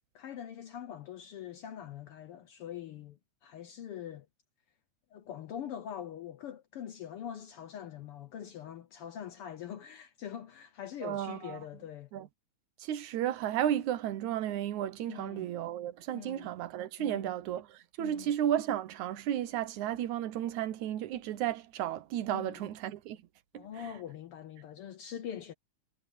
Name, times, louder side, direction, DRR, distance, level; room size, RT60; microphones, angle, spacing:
voice 1, 0.1-4.3 5.1-12.1 15.1-15.5 16.1-16.5 17.0-17.3 18.0-18.3 22.3-22.7 23.5-25.5, left 9 dB, 70° left, 1.4 m, -43 dB
voice 2, 11.0-11.6 12.1-12.3 12.8-23.2 23.5-23.9, right 11 dB, 80° right, 2.4 m, -33 dB
omnidirectional pair, 3.3 m